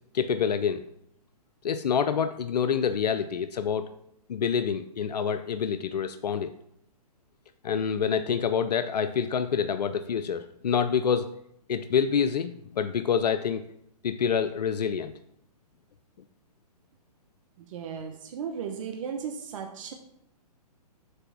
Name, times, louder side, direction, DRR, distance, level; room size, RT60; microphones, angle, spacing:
voice 1, 0.1-0.8 1.6-3.9 4.3-6.5 7.6-11.3 11.7-13.6 14.0-15.1, left 7 dB, 80° left, 10 dB, 0.5 m, -27 dB
voice 2, 17.6-19.9, right 7 dB, 55° right, 4 dB, 1.0 m, -36 dB
7.7 x 3.3 x 6.2 m, 0.75 s
hypercardioid pair, 135°, 20 cm